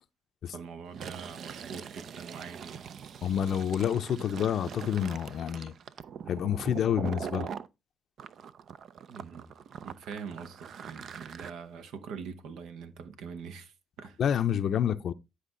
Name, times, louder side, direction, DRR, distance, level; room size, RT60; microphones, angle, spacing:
voice 1, 0.4-2.9 9.1-9.5 9.8-14.2, right 6 dB, 85° right, 1.0 m, -43 dB
Fill (with liquid), 0.9-7.7 8.2-11.5, right 7 dB, 65° right, 0.5 m, -42 dB
voice 2, 3.2-5.7 6.3-7.5 14.2-15.1, left 9 dB, 65° left, 0.5 m, -28 dB
10.0 x 4.8 x 3.8 m
cardioid pair, 90°, 0 cm